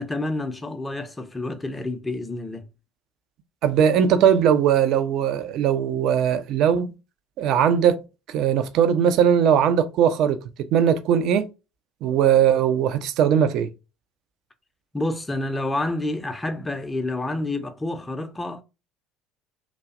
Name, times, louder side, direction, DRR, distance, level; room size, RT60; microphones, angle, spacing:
voice 1, 0.0-2.7 14.9-18.6, left 2 dB, 15° left, 0.5 m, -28 dB
voice 2, 3.6-6.9 7.4-8.0 8.3-10.4 10.7-11.5 12.0-13.7, right 8 dB, 55° right, 0.4 m, -19 dB
2.5 x 2.0 x 2.4 m
figure-of-eight pair, 60°, 0 cm